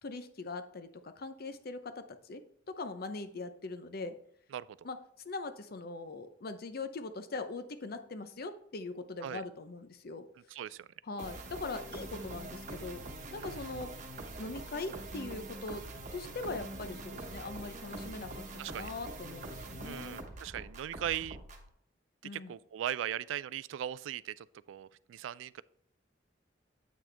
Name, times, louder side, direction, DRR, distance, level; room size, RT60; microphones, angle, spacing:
voice 1, 0.0-2.4 2.7-4.1 4.8-5.0 5.2-10.3 11.1-13.9 14.4-15.8 16.1-20.2 22.2-22.5, left 3 dB, 55° left, 0.7 m, -41 dB
voice 2, 4.5-4.9 9.2-9.4 10.5-10.9 13.4-13.6 18.6-18.9 19.8-21.4 22.2-25.6, right 10 dB, 90° right, 0.3 m, -39 dB
sound 1, 11.2-21.7, right 2 dB, 40° right, 1.1 m, -44 dB
8.4 x 6.1 x 3.3 m
head